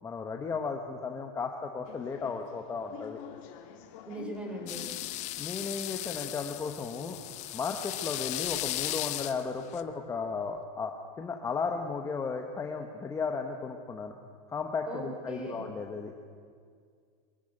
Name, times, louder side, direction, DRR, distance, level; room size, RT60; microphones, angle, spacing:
voice 1, 0.0-3.2 5.4-7.2 7.5-14.1 14.5-16.1, left 5 dB, 15° left, 4 dB, 1.1 m, -35 dB
sound 1, 1.8-9.0, left 9 dB, 55° left, 2.4 m, -50 dB
voice 2, 4.1-4.9 14.9-15.7, right 1 dB, 5° right, 1 dB, 3.9 m, -39 dB
sound 2, 4.7-9.8, left 16 dB, 35° left, 0.8 m, -36 dB
23.0 x 15.0 x 8.9 m, 2.1 s
supercardioid pair, 155°, 19 cm